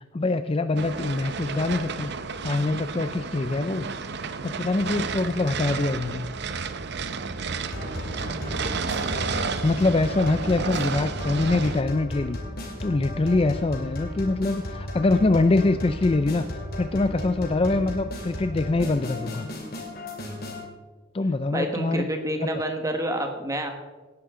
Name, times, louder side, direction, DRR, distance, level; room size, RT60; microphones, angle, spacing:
voice 1, 0.1-2.1 2.4-3.9 4.4-6.3 9.6-12.4 12.8-16.5 16.8-19.5 21.1-22.1 22.4-22.5, left 2 dB, 25° left, 10 dB, 0.4 m, -24 dB
sound 1, 0.8-11.8, right 4 dB, 55° right, 0.7 m, -32 dB
sound 2, 7.7-20.6, left 1 dB, 50° left, 2.8 m, -35 dB
voice 2, 21.5-23.7, right 1 dB, 15° right, 5 dB, 1.5 m, -28 dB
17.5 x 10.5 x 3.8 m, 1.3 s
head